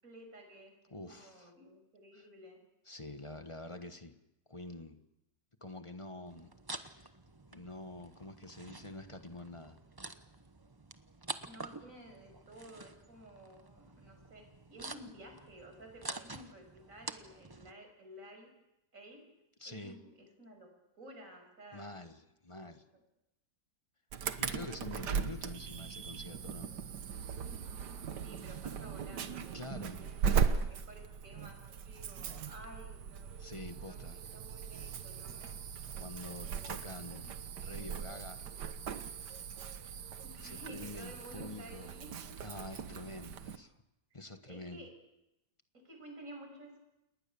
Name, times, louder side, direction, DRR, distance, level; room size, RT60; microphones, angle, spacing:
voice 1, 0.0-0.7 1.1-2.6 11.5-18.5 18.9-19.2 19.6-20.7 21.0-21.9 22.6-22.7 28.2-33.4 33.9-35.6 40.2-42.4 44.5-44.9 45.8-46.8, right 1 dB, 40° right, 4 dB, 6.6 m, -53 dB
voice 2, 0.9-1.5 2.1-2.3 2.8-4.1 4.5-5.0 5.6-7.1 7.5-9.8 19.6-20.0 21.7-22.8 24.4-26.7 29.5-30.0 33.4-34.2 36.0-38.4 40.3-41.9 42.4-43.7 44.1-44.9, left 2 dB, 20° left, 8 dB, 1.2 m, -47 dB
sound 1, 6.3-17.7, right 2 dB, 20° right, 0.6 m, -48 dB
Insect / Alarm, 24.1-43.6, right 7 dB, 65° right, 1.7 m, -38 dB
29.0 x 19.5 x 7.1 m, 0.89 s
omnidirectional pair, 2.0 m